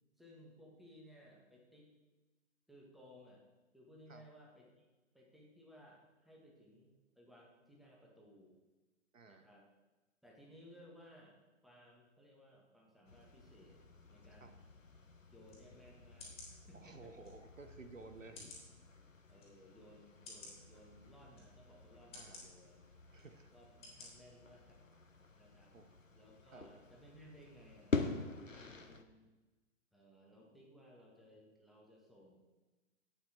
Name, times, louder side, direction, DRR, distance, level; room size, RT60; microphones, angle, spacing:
voice 1, 0.2-1.9 2.7-3.4 3.7-4.9 5.1-8.6 9.3-9.7 10.2-13.8 14.1-14.5 15.3-17.1 19.3-22.8 23.5-24.8 25.4-25.8 26.1-28.0 28.5-29.3 29.9-32.4, equal, ahead, -3 dB, 1.9 m, -60 dB
voice 2, 9.1-9.5 14.4-14.6 16.7-18.5 22.1-22.5 23.1-23.5 25.7-25.9 26.5-26.7, right 3 dB, 85° right, 8 dB, 1.1 m, -55 dB
sound 1, 13.1-29.0, left 3 dB, 90° left, 1.1 m, -47 dB
sound 2, 15.5-15.6 16.2-16.5 17.2-17.3 18.3-18.7 19.4-19.5 20.2-20.5 21.3-21.5 22.1-22.4 23.2-23.3 23.8-24.1 24.5-24.6, left 3 dB, 15° left, 3.2 m, -52 dB
11.5 x 8.8 x 4.5 m, 1.2 s
figure-of-eight pair, 120°, 38 cm